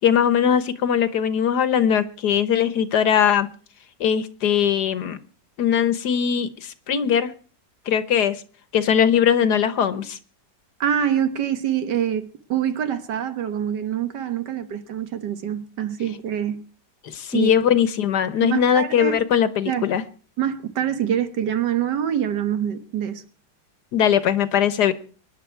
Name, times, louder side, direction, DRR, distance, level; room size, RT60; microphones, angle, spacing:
voice 1, 0.0-3.5 4.0-5.2 5.6-7.3 7.9-8.4 8.7-10.2 17.0-20.0 23.9-24.9, left 8 dB, 75° left, 1.6 m, -20 dB
voice 2, 10.8-16.6 17.3-17.5 18.4-19.3 19.7-19.9 20.4-23.2, right 9 dB, 85° right, 1.9 m, -25 dB
24.5 x 10.5 x 4.6 m
omnidirectional pair, 1.8 m